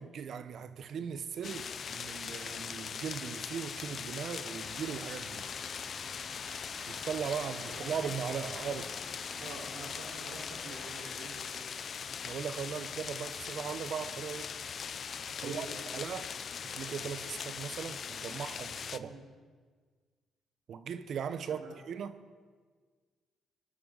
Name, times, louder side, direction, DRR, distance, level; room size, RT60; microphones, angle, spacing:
voice 1, 0.0-5.5 6.9-8.8 12.2-14.5 15.4-15.7 15.9-16.3 16.6-19.1 20.7-22.2, right 7 dB, 65° right, 0.9 m, -38 dB
sound 1, 1.4-19.0, left 7 dB, 50° left, 0.6 m, -41 dB
sound 2, 4.5-11.0, left 2 dB, 30° left, 5.2 m, -49 dB
voice 2, 9.4-11.8 15.4-15.9 19.0-19.2 21.5-21.8, right 3 dB, 85° right, 4.5 m, -46 dB
25.0 x 12.5 x 4.0 m
cardioid pair, 90°, 0 cm